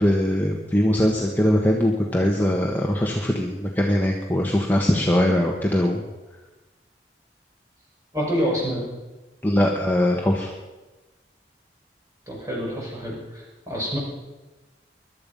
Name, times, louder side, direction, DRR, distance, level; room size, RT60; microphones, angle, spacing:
voice 1, 0.0-6.0 9.4-10.5, left 1 dB, 10° left, -1 dB, 1.3 m, -21 dB
voice 2, 8.1-8.8 12.3-14.0, equal, 20° right, -4 dB, 5.9 m, -27 dB
21.5 x 12.0 x 5.4 m, 1.2 s
head